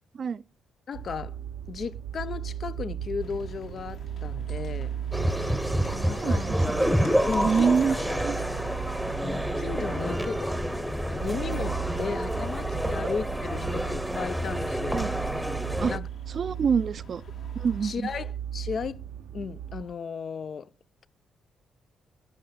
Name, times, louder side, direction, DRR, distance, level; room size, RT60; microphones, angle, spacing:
voice 1, 0.9-1.4 1.7-4.9 5.9-6.4 7.3-8.0 9.2-15.1 15.9-16.0 17.8-19.0 19.3-20.7, left 6 dB, 50° left, 0.6 m, -35 dB
sound 1, 0.9-19.8, right 9 dB, 90° right, 0.8 m, -37 dB
sound 2, 3.2-17.9, left 4 dB, 65° left, 2.4 m, -50 dB
sound 3, 5.1-16.0, equal, ahead, 0.9 m, -28 dB
voice 2, 6.1-6.9 7.4-8.4 14.9-15.1 15.8-15.9 16.3-17.2 17.5-18.1, right 6 dB, 50° right, 0.5 m, -26 dB
12.0 x 5.7 x 5.8 m
cardioid pair, 90°, 0 cm